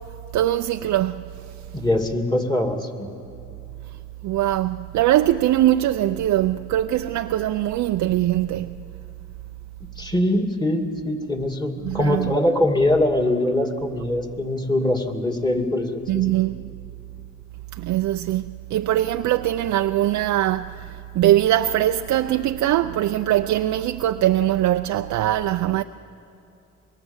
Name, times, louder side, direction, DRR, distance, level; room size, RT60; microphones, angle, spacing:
voice 1, 0.3-1.2 4.2-8.8 11.8-12.3 16.1-16.6 17.8-25.8, right 13 dB, 70° right, 0.6 m, -22 dB
voice 2, 1.7-3.1 10.0-16.3, left 1 dB, 15° left, 2.5 m, -23 dB
25.5 x 22.5 x 7.3 m
cardioid pair, 90°, 30 cm